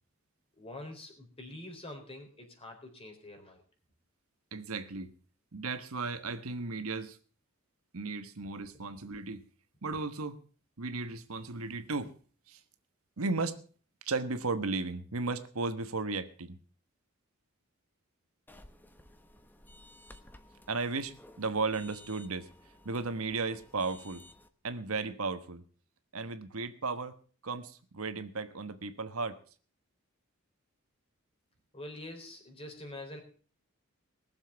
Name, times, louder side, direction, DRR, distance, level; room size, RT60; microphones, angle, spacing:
voice 1, 0.5-3.6 31.7-33.2, left 1 dB, 25° left, 3.9 m, -45 dB
voice 2, 4.5-5.1 5.5-7.2 7.9-9.5 9.8-10.4 10.8-12.1 12.5-12.6 13.2-13.6 14.0-16.6 20.7-22.5 22.8-24.2 24.6-25.6 26.1-27.1 27.4-29.4, right 3 dB, 75° right, 1.3 m, -35 dB
sound 1, 18.5-24.5, left 1 dB, 10° left, 1.0 m, -56 dB
20.0 x 7.3 x 7.0 m
head